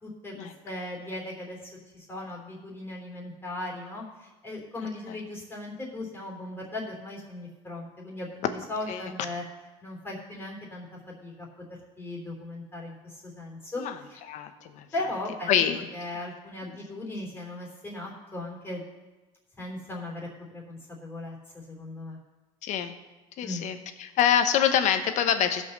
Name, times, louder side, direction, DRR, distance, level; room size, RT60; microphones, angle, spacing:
voice 1, 0.0-9.4 9.8-10.9 11.2-11.5 12.0-13.8 14.1-14.2 14.9-15.6 15.9-18.8 19.6-22.2 23.4-23.6, left 2 dB, 15° left, -2 dB, 3.5 m, -38 dB
voice 2, 14.3-14.9 15.5-15.8 16.6-16.8 22.6-22.9 23.4-25.6, left 9 dB, 60° left, 8 dB, 1.2 m, -25 dB
15.5 x 5.6 x 6.7 m, 1.2 s
cardioid pair, 115°, 14 cm